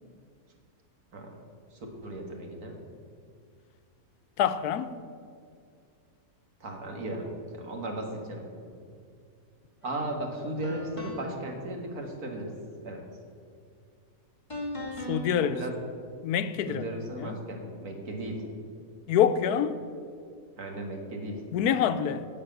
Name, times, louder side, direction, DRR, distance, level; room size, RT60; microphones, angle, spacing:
voice 1, 1.7-2.8 6.6-8.9 9.8-12.5 12.8-13.0 15.4-15.7 16.7-18.4 20.6-21.4, right 1 dB, 75° right, 2.2 m, -36 dB
voice 2, 4.4-4.9 15.1-15.6 16.2-16.8 17.2-17.4 19.1-19.8 21.5-22.3, left 9 dB, 85° left, 1.2 m, -26 dB
sound 1, 9.8-10.0 10.6-11.4 14.5-15.2, left 1 dB, 20° left, 2.2 m, -37 dB
12.0 x 6.6 x 9.0 m
omnidirectional pair, 1.6 m